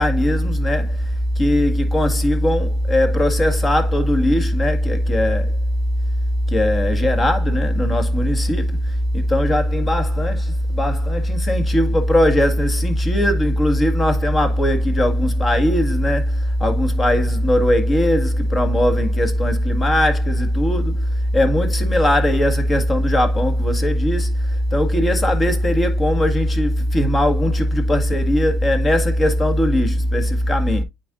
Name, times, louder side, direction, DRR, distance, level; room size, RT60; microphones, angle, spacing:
voice 1, 0.0-5.6 6.5-8.6 9.1-30.8, equal, 30° left, 1.8 m, -18 dB
9.0 x 4.4 x 2.5 m
hypercardioid pair, 70°, 0 cm